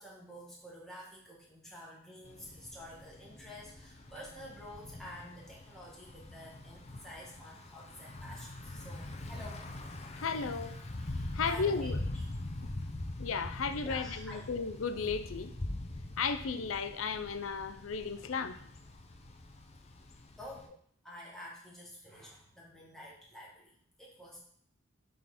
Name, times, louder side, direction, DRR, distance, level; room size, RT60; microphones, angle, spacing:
voice 1, 0.0-9.6 11.0-11.9 12.4-13.3 13.8-14.4 20.4-20.7 21.0-24.4, equal, ahead, -5 dB, 1.8 m, -50 dB
Thunder / Bicycle, 2.2-20.7, left 1 dB, 30° left, 0.7 m, -43 dB
voice 2, 10.1-10.8 11.3-12.0 12.6-12.7 13.2-15.5 16.2-18.6, left 5 dB, 90° left, 11 dB, 0.6 m, -34 dB
7.7 x 3.8 x 4.2 m, 0.63 s
head